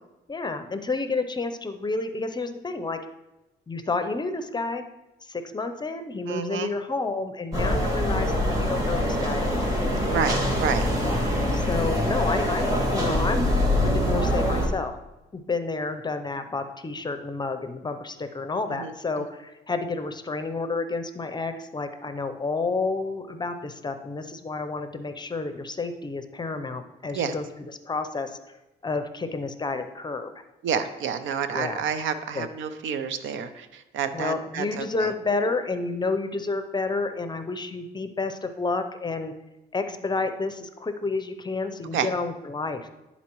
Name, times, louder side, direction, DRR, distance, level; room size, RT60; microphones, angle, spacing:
voice 1, 0.3-3.0 3.7-4.8 5.2-9.7 11.0-13.6 13.8-15.0 15.3-28.4 28.8-30.3 31.5-31.8 32.3-32.5 34.1-39.3 39.7-42.9, left 3 dB, 20° left, 8 dB, 0.6 m, -30 dB
voice 2, 6.3-6.7 10.1-10.9 18.8-18.9 27.1-27.3 30.6-35.1 41.9-42.1, right 7 dB, 75° right, 10 dB, 0.6 m, -29 dB
sound 1, 7.5-14.7, left 1 dB, 20° right, 1.7 m, -24 dB
10.5 x 4.1 x 3.0 m, 0.99 s
cardioid pair, 90°, 20 cm